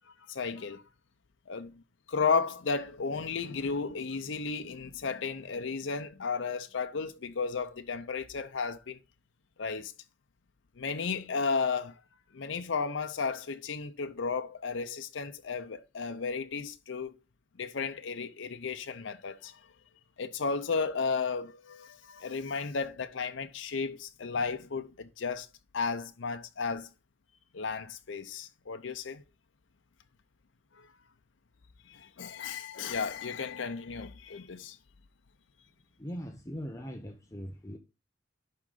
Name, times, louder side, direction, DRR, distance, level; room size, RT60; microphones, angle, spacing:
voice 1, 0.3-0.8 1.5-1.8 2.1-9.0 9.6-9.9 10.8-11.9 12.3-17.1 17.6-19.6 20.2-25.5 25.7-26.9 27.5-29.2 30.8-30.9 31.9-34.8, left 5 dB, 80° left, 0.6 m, -34 dB
voice 2, 36.0-37.8, equal, 15° left, 0.7 m, -40 dB
11.0 x 3.9 x 3.7 m
head